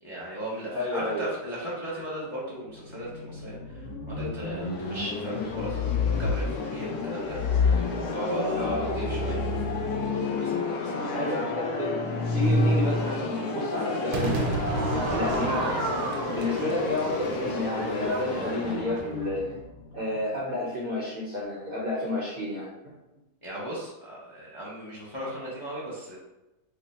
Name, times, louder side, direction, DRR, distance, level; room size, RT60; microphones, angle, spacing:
voice 1, 0.0-9.4 10.3-11.4 16.6-16.8 23.4-26.2, right 1 dB, 35° left, -7 dB, 0.5 m, -37 dB
voice 2, 0.7-1.2 8.6-8.9 11.1-12.0 12.3-14.7 15.1-15.7 16.3-19.5 19.9-22.7, left 1 dB, 50° right, -6 dB, 0.7 m, -30 dB
sound 1, 2.7-20.5, left 3 dB, 90° left, 1.2 m, -33 dB
sound 2, 5.5-6.5 7.3-13.3, left 3 dB, 70° left, 0.9 m, -28 dB
Crowd / Fireworks, 14.1-19.4, right 3 dB, 75° right, 1.1 m, -32 dB
3.3 x 2.1 x 4.0 m, 1.0 s
omnidirectional pair, 1.7 m